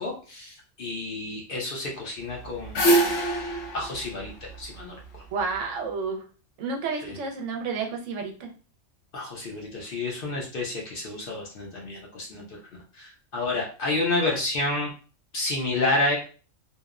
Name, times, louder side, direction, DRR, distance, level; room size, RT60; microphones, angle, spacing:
voice 1, 0.0-2.9 3.7-5.2 7.0-7.2 9.1-12.6 12.9-14.9 15.3-16.2, left 2 dB, 55° left, -2 dB, 0.7 m, -30 dB
sound 1, 2.3-5.4, right 1 dB, 80° left, 1.0 m, -25 dB
voice 2, 5.3-6.2 6.6-8.5, right 4 dB, 75° right, 2 dB, 0.9 m, -30 dB
2.8 x 2.0 x 2.4 m, 0.37 s
omnidirectional pair, 1.3 m